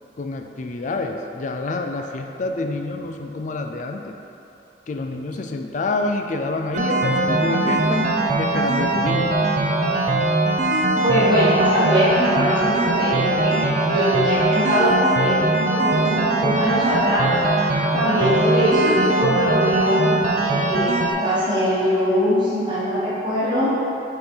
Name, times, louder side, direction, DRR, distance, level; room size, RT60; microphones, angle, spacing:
voice 1, 0.2-4.1 4.9-8.1 8.4-9.3, left 2 dB, 45° left, 4 dB, 0.4 m, -27 dB
sound 1, 6.7-21.1, right 2 dB, 40° right, 0.5 m, -21 dB
voice 2, 11.0-15.4 15.7-17.3 17.9-20.1 20.4-23.7, equal, 25° right, -10 dB, 1.3 m, -21 dB
6.5 x 3.8 x 4.5 m, 3.0 s
head